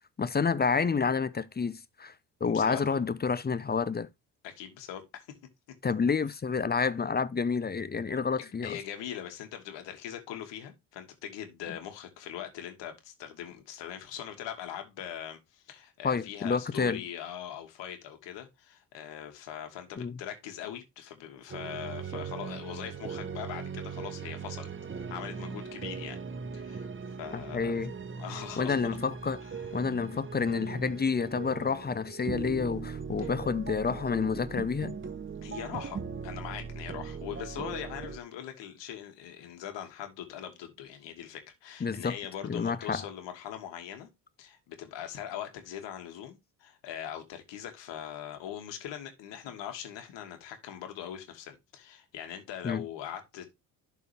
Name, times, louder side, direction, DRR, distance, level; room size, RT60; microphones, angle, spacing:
voice 1, 0.2-2.1 2.4-4.1 5.8-8.8 16.0-17.0 20.0-20.2 27.3-27.9 28.6-29.4 29.7-35.0 41.8-42.2 42.4-43.0 52.6-52.8, left 5 dB, 20° left, 0.8 m, -29 dB
voice 2, 2.4-3.0 4.4-5.4 8.4-24.7 25.0-26.2 26.5-26.9 27.2-27.7 28.2-28.8 29.4-29.6 33.2-33.3 35.4-44.1 44.4-53.6, left 10 dB, 70° left, 2.5 m, -41 dB
sound 1, 21.5-38.2, right 5 dB, 25° right, 1.1 m, -39 dB
11.5 x 4.7 x 3.5 m
hypercardioid pair, 60°, 45 cm